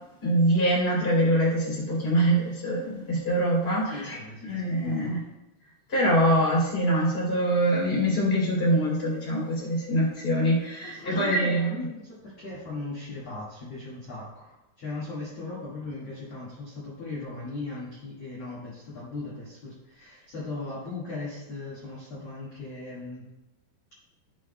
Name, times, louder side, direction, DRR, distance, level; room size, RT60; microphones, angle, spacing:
voice 1, 0.2-4.2 4.5-5.2 5.9-11.9, right 1 dB, 15° left, -5 dB, 2.3 m, -24 dB
voice 2, 3.9-5.1 10.8-23.2, left 3 dB, 50° left, -7 dB, 2.1 m, -38 dB
14.0 x 6.3 x 2.2 m, 0.98 s
omnidirectional pair, 5.2 m